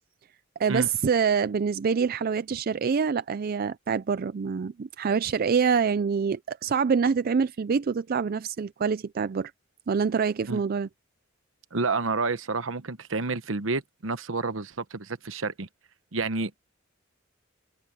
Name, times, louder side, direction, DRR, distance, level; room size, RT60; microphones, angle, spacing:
voice 1, 0.6-9.5 9.9-10.9, right 6 dB, 50° right, 0.4 m, -26 dB
voice 2, 11.7-15.7 16.1-16.6, right 3 dB, 75° right, 1.1 m, -29 dB
head